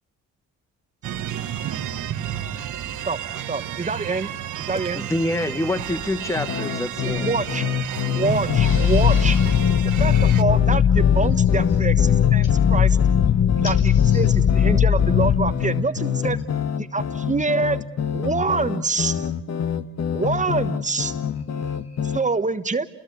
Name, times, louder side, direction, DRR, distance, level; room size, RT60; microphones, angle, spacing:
sound 1, 1.0-10.4, right 10 dB, 75° right, 1.5 m, -31 dB
voice 1, 3.5-4.3 4.6-5.1 7.0-7.6 8.1-9.4 10.0-13.0 13.6-16.4 16.8-17.8 18.1-19.3 20.1-21.1 22.0-22.8, right 3 dB, 25° right, 11 dB, 1.3 m, -25 dB
voice 2, 4.9-7.3, left 1 dB, 10° left, 12 dB, 1.2 m, -26 dB
sound 2, 6.3-22.2, left 8 dB, 60° left, 1.5 m, -27 dB
sound 3, 8.5-15.5, left 9 dB, 40° left, 1.0 m, -18 dB
voice 3, 8.6-9.7 11.4-11.9 13.6-14.4 21.3-22.2, left 4 dB, 85° left, 3 dB, 7.3 m, -38 dB
30.0 x 20.5 x 8.5 m, 0.78 s
cardioid pair, 90°, 30 cm